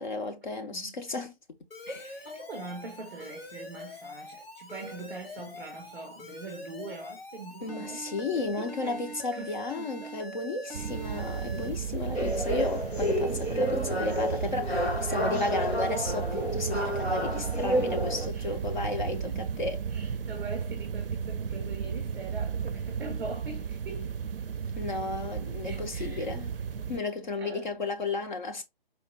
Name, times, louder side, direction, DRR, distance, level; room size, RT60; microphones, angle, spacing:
voice 1, 0.0-1.3 1.9-2.3 7.6-19.8 24.8-26.5 26.9-28.6, left 3 dB, 50° left, 0.6 m, -33 dB
Alarm, 1.7-11.7, equal, 65° left, 1.5 m, -43 dB
voice 2, 2.0-8.0 8.3-9.1 9.3-10.2 11.6-11.7 17.2-17.3 18.3-18.6 18.9-19.0 19.3-19.4 19.9-24.1 25.6-26.3 27.4-27.8, right 3 dB, 5° right, 0.6 m, -43 dB
sound 1, 10.7-27.0, right 6 dB, 65° right, 0.4 m, -34 dB
sound 2, 12.1-18.3, equal, 85° left, 1.5 m, -30 dB
4.3 x 2.3 x 3.3 m
figure-of-eight pair, 140°, 31 cm